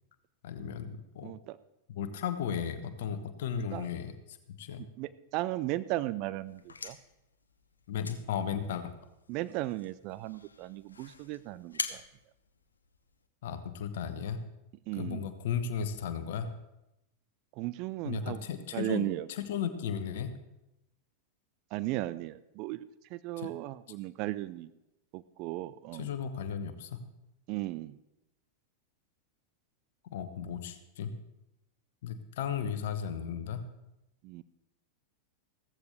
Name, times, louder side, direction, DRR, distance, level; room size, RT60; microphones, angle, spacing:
voice 1, 0.4-1.3 1.9-4.1 4.6-4.8 7.9-8.9 13.4-14.4 14.9-16.5 18.0-20.3 23.4-23.5 25.9-27.0 30.1-31.1 32.0-33.6, left 8 dB, 55° left, 10 dB, 1.2 m, -35 dB
voice 2, 1.2-1.6 3.7-3.9 5.0-7.0 9.3-12.0 14.9-15.3 17.6-18.4 18.7-19.3 21.7-22.8 23.1-24.7 25.1-26.1 27.5-27.9 34.2-34.4, right 17 dB, 40° right, 15 dB, 0.5 m, -36 dB
sound 1, 6.4-13.3, left 4 dB, 75° left, 0.8 m, -44 dB
15.5 x 14.5 x 3.4 m, 0.90 s
figure-of-eight pair, 90°, 0 cm